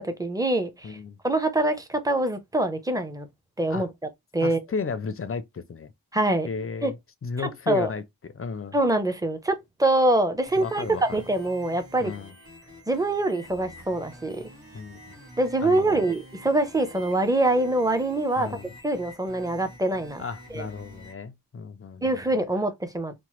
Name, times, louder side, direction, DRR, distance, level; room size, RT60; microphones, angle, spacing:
voice 1, 0.0-1.0 1.2-3.3 3.6-3.9 4.3-4.6 6.1-6.5 6.8-6.9 7.4-7.9 8.7-12.1 12.9-14.5 15.4-18.6 18.8-20.2 20.5-20.7 22.0-23.1, right 2 dB, 10° right, 0.6 m, -24 dB
voice 2, 0.8-1.2 3.7-3.9 4.4-5.9 6.4-7.0 7.2-8.0 8.3-8.8 10.6-11.0 12.0-12.3 14.7-15.2 15.6-16.1 18.4-18.7 20.2-22.2, left 5 dB, 35° left, 0.4 m, -34 dB
sound 1, 10.5-21.1, equal, 60° right, 1.4 m, -47 dB
2.9 x 2.0 x 3.0 m
wide cardioid pair, 60°, 39 cm